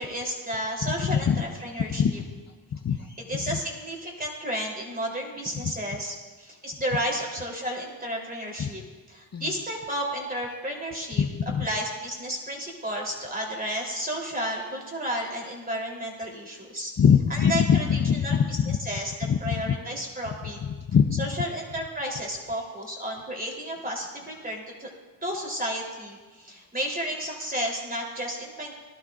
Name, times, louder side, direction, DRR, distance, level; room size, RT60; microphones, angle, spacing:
voice 1, 0.0-2.0 3.3-8.8 9.1-11.2 11.6-16.9 17.3-18.4 18.9-19.1 19.4-20.6 21.2-24.9 25.2-28.7, equal, 20° right, -1 dB, 3.4 m, -32 dB
voice 2, 0.8-1.4 1.9-2.3 2.7-3.1 3.3-3.6 5.6-5.7 8.6-8.7 9.3-9.6 11.2-11.7 17.0-18.8 19.2-19.8 20.6-21.3, left 7 dB, 35° left, 6 dB, 0.6 m, -23 dB
18.5 x 11.5 x 2.5 m, 1.3 s
cardioid pair, 75°, 44 cm